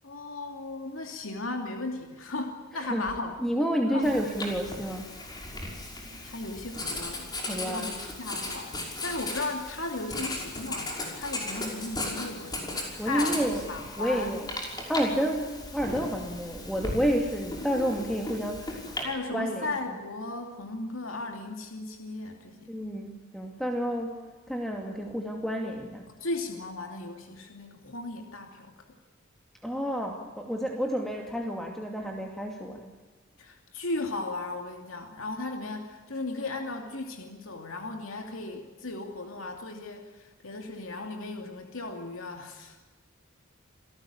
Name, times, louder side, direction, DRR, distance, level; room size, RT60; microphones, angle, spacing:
voice 1, 0.0-3.3 3.9-4.1 6.2-14.4 19.0-22.7 26.2-28.8 33.4-42.9, left 2 dB, 80° left, 3 dB, 2.7 m, -36 dB
voice 2, 3.4-5.1 7.5-7.9 13.0-13.6 14.0-14.5 14.9-18.8 19.3-19.7 22.7-24.2 24.5-26.0 29.6-32.9, equal, ahead, 1 dB, 2.4 m, -30 dB
Writing, 4.0-19.0, left 2 dB, 20° left, 5.9 m, -37 dB
28.5 x 18.5 x 8.7 m, 1.3 s
head